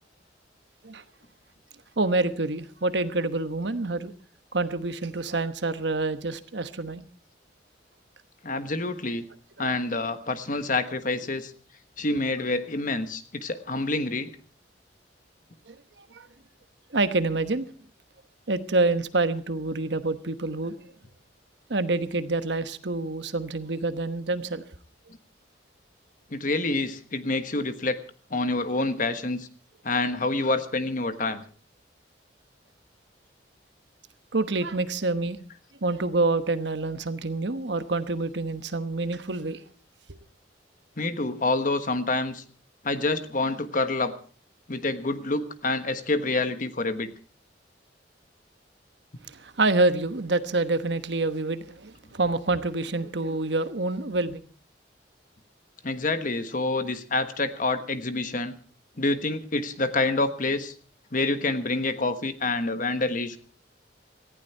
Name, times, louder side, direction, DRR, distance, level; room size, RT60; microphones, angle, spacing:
voice 1, 2.0-4.1 4.5-7.0 15.7-16.3 16.9-17.7 18.5-20.7 21.7-24.6 34.3-35.4 35.8-39.6 49.2-54.4, right 2 dB, 70° right, 11 dB, 1.2 m, -27 dB
voice 2, 8.4-9.2 9.6-11.5 12.0-14.3 26.3-28.0 28.3-29.5 29.8-31.4 41.0-42.4 42.8-44.1 44.7-47.1 55.8-58.5 59.0-60.7 61.1-63.4, left 2 dB, 45° left, 10 dB, 1.3 m, -27 dB
18.5 x 14.5 x 4.5 m, 0.42 s
head